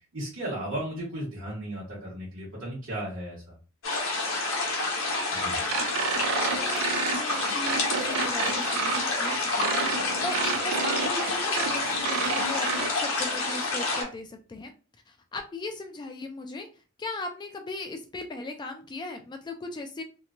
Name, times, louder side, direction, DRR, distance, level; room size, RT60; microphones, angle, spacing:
voice 1, 0.1-3.5 5.3-5.6, right 1 dB, 65° right, -8 dB, 1.1 m, -35 dB
sound 1, 3.8-14.0, left 3 dB, 70° left, 0.9 m, -28 dB
sound 2, 5.7-12.9, right 6 dB, 90° right, 0.4 m, -31 dB
voice 2, 6.6-14.7 15.1-16.7 17.0-20.0, left 2 dB, 20° left, 5 dB, 0.3 m, -38 dB
2.9 x 2.2 x 2.5 m, 0.34 s
head